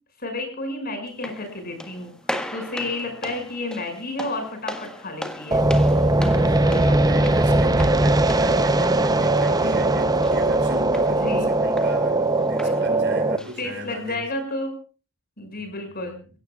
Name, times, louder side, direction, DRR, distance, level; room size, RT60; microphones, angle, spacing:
voice 1, 0.2-2.1 2.5-5.7 11.1-11.5 12.6-12.7 13.6-14.7 15.4-16.2, left 2 dB, 45° left, 5 dB, 6.5 m, -31 dB
sound 1, 1.1-14.1, left 1 dB, 5° left, 1.6 m, -38 dB
sound 2, 5.5-13.4, right 2 dB, 20° right, 0.8 m, -20 dB
voice 2, 6.4-14.2 15.6-16.3, right 1 dB, 55° right, 5 dB, 5.5 m, -37 dB
29.5 x 16.5 x 2.4 m, 0.36 s
head